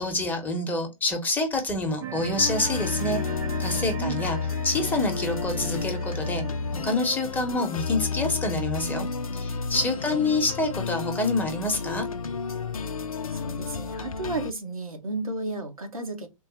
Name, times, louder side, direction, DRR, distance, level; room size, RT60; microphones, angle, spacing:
voice 1, 0.0-3.2 3.6-4.4 4.6-6.4 6.7-9.1 9.3-12.1, left 2 dB, 10° left, 0.8 m, -27 dB
sound 1, 2.0-7.1, right 10 dB, 40° right, 0.5 m, -39 dB
sound 2, 2.4-14.5, left 5 dB, 80° left, 0.5 m, -31 dB
voice 2, 9.9-10.4 13.3-16.3, right 2 dB, 85° right, 1.0 m, -33 dB
3.7 x 2.1 x 4.3 m
figure-of-eight pair, 115°, 18 cm